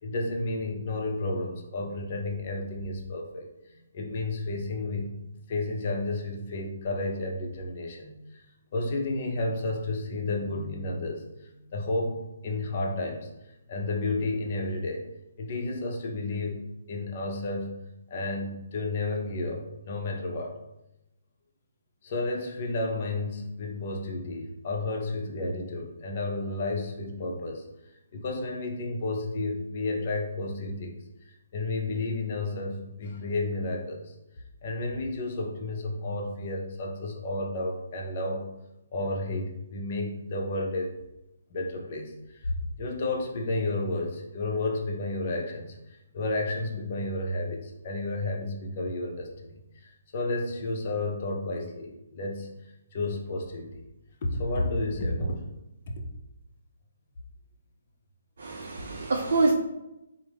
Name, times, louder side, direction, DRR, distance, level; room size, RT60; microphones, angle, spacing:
voice 1, 0.0-3.5 3.9-5.1 5.5-8.4 8.7-12.2 12.4-13.3 13.7-15.1 15.4-16.6 16.9-17.8 18.1-20.6 22.0-27.7 28.1-34.1 34.6-38.5 38.9-41.0 41.5-52.5 52.9-53.8 54.2-55.4 55.9-56.0, left 2 dB, 45° left, 2 dB, 0.6 m, -31 dB
voice 2, 58.4-59.5, right 3 dB, 65° right, 0 dB, 0.4 m, -26 dB
3.5 x 2.0 x 3.4 m, 0.92 s
figure-of-eight pair, 140°, 0 cm